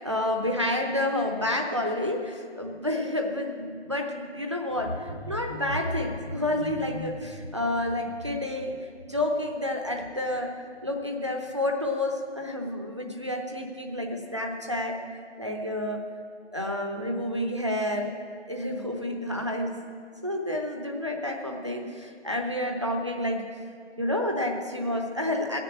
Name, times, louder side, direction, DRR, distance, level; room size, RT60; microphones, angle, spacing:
voice 1, 0.0-8.7 9.1-10.5 10.8-16.0 16.5-18.1 18.5-19.8 20.2-23.4 24.0-25.6, left 1 dB, 25° right, 2 dB, 0.8 m, -29 dB
sound 1, 4.7-10.5 10.8-11.1 11.4-11.5, left 1 dB, 65° left, 1.4 m, -39 dB
15.0 x 6.7 x 8.5 m, 2.2 s
figure-of-eight pair, 170°, 34 cm